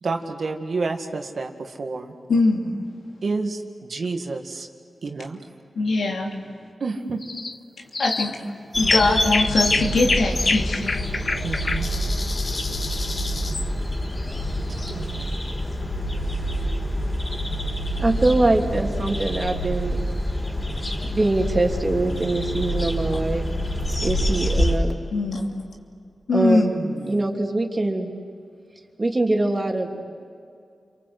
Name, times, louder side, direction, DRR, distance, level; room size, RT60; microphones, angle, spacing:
voice 1, 0.0-2.2 3.2-4.7 5.0-5.4 6.8-7.2 11.4-11.9 14.9-15.4 16.2-16.5 26.7-27.4, right 3 dB, 70° right, 4 dB, 2.1 m, -30 dB
voice 2, 2.3-2.7 5.8-6.3 8.0-8.4 8.8-11.0 25.1-25.5 26.3-26.8, left 3 dB, 90° left, 1 dB, 2.8 m, -22 dB
sound 1, 7.2-7.6 7.9-8.4 8.7-13.7, left 3 dB, 50° left, 0.9 m, -27 dB
sound 2, 8.7-24.8, equal, 35° left, 4.6 m, -26 dB
voice 3, 18.0-20.0 21.0-23.4 24.0-25.0 26.3-26.8 27.1-28.1 29.0-30.0, right 2 dB, 35° right, 2 dB, 3.2 m, -23 dB
29.5 x 24.0 x 8.0 m, 2.3 s
cardioid pair, 50°, 0 cm